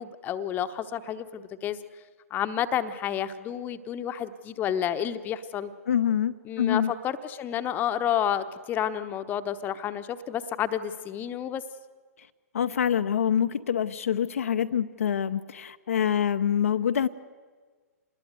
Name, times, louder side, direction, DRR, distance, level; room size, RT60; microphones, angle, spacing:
voice 1, 0.0-1.8 2.3-5.7 6.4-11.6, left 10 dB, 20° left, 10 dB, 1.0 m, -30 dB
voice 2, 5.9-6.9 12.5-17.1, left 9 dB, 60° left, 8 dB, 0.7 m, -25 dB
27.0 x 20.5 x 8.0 m, 1.5 s
figure-of-eight pair, 115°, 9 cm